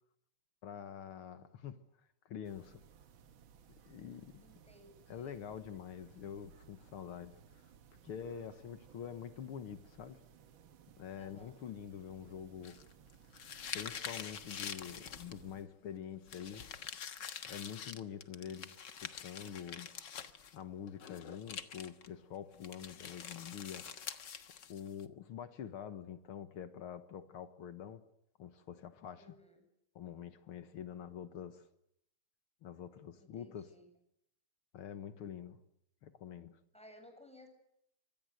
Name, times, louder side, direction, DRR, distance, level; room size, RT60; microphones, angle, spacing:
voice 1, 0.6-1.8 2.3-2.8 3.9-4.4 5.1-7.7 8.0-10.2 11.0-12.8 13.7-16.6 17.4-19.9 20.5-24.2 24.7-28.0 28.4-29.3 30.0-31.6 32.6-33.7 34.7-35.6 36.0-36.6, left 8 dB, 80° left, 10 dB, 2.2 m, -46 dB
sound 1, 2.4-15.6, right 8 dB, 70° right, 2.0 m, -61 dB
voice 2, 4.4-5.4 11.1-11.6 29.1-29.6 33.2-33.9 36.7-37.5, left 1 dB, 5° left, 5 dB, 7.2 m, -59 dB
sound 2, 12.6-15.6 16.3-20.6 20.9-22.1 22.6-25.0, left 7 dB, 60° left, 2.0 m, -46 dB
25.5 x 25.0 x 7.9 m, 0.76 s
omnidirectional pair, 2.3 m